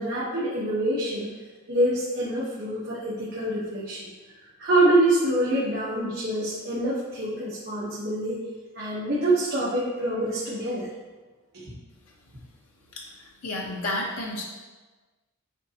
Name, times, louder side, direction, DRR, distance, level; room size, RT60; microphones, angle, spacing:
voice 1, 0.0-1.3 1.7-4.0 4.6-8.4 8.7-10.9 11.5-11.7, right 1 dB, 50° right, -8 dB, 1.2 m, -25 dB
voice 2, 12.9-14.4, left 1 dB, 90° left, -2 dB, 0.9 m, -32 dB
8.1 x 4.0 x 2.9 m, 1.3 s
head